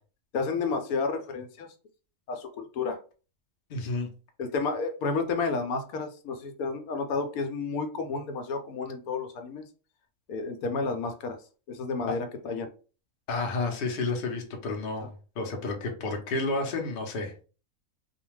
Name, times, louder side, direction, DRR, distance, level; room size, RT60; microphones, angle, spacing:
voice 1, 0.3-1.7 2.3-3.0 4.4-9.6 10.3-11.4 11.7-12.7, left 4 dB, 80° left, 6 dB, 1.0 m, -31 dB
voice 2, 3.7-4.1 12.1-12.2 13.3-17.3, left 3 dB, 50° left, 2 dB, 0.7 m, -31 dB
2.4 x 2.2 x 3.1 m, 0.36 s
omnidirectional pair, 1.5 m